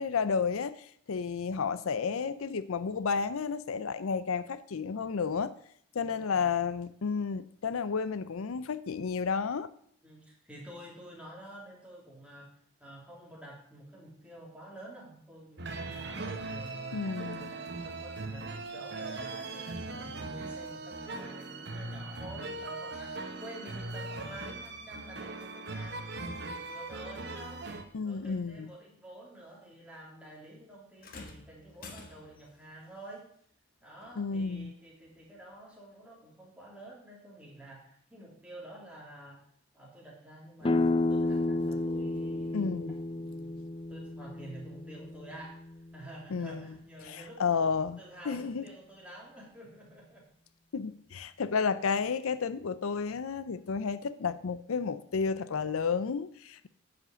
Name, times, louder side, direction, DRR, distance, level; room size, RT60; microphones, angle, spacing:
voice 1, 0.0-5.5 5.9-9.7 16.9-17.5 27.9-28.7 34.2-34.7 42.5-43.0 46.3-46.7 47.0-48.0 48.3-48.6 50.7-56.7, left 5 dB, 80° left, 0.5 m, -32 dB
voice 2, 5.9-6.6 10.0-12.5 12.8-27.7 28.0-33.3 33.8-39.4 39.7-45.6 45.9-50.3 51.8-51.9, right 1 dB, 5° right, 3.3 m, -49 dB
sound 1, 15.6-27.8, right 3 dB, 50° right, 1.0 m, -39 dB
sound 2, 31.0-32.5 34.0-34.2 35.0-35.1, left 3 dB, 40° left, 1.4 m, -48 dB
sound 3, 40.6-46.2, left 2 dB, 25° left, 0.4 m, -32 dB
10.5 x 5.2 x 8.1 m
head